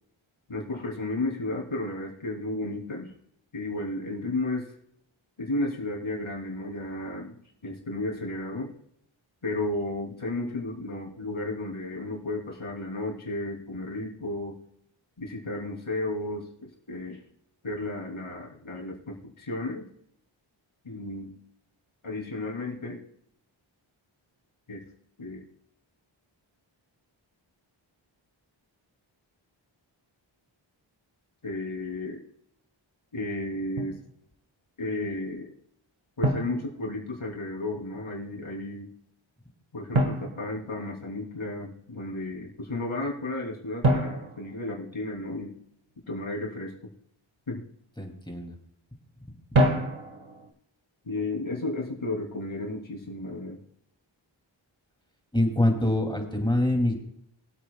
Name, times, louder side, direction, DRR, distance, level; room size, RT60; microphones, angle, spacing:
voice 1, 0.5-3.1 3.5-4.7 5.4-7.4 7.6-8.7 9.4-14.5 15.2-17.3 17.6-19.8 20.8-21.3 22.0-23.0 24.7-24.8 25.2-25.5 31.4-32.2 33.1-34.0 34.8-35.5 36.2-38.9 39.7-45.5 46.1-46.7 47.5-47.6 51.0-53.6, left 2 dB, 75° left, -1 dB, 3.1 m, -33 dB
Drum, 33.8-34.0 36.2-37.4 39.9-41.3 43.8-45.5 49.5-50.5, right 1 dB, 75° right, 1.7 m, -28 dB
voice 2, 48.0-48.5 55.3-57.0, left 1 dB, 10° left, 2 dB, 2.6 m, -25 dB
23.0 x 8.3 x 2.3 m, 0.73 s
wide cardioid pair, 55°, 48 cm